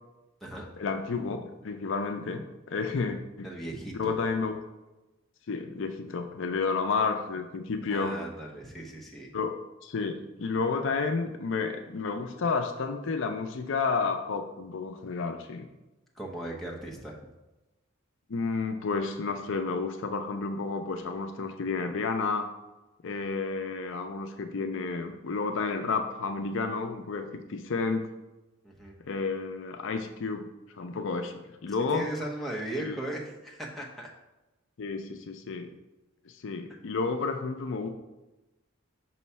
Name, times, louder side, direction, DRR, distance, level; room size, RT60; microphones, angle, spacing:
voice 1, 0.8-3.5 3.9-4.6 5.5-8.2 9.3-15.7 18.3-22.5 23.0-28.1 29.1-30.5 30.8-32.1 32.8-33.0 34.8-35.7 36.3-37.9, left 4 dB, 65° left, 6 dB, 0.5 m, -31 dB
voice 2, 3.4-4.1 7.9-9.3 16.1-17.2 28.6-29.0 31.9-34.1, right 1 dB, ahead, -3 dB, 0.8 m, -37 dB
5.5 x 3.1 x 5.5 m, 1.1 s
head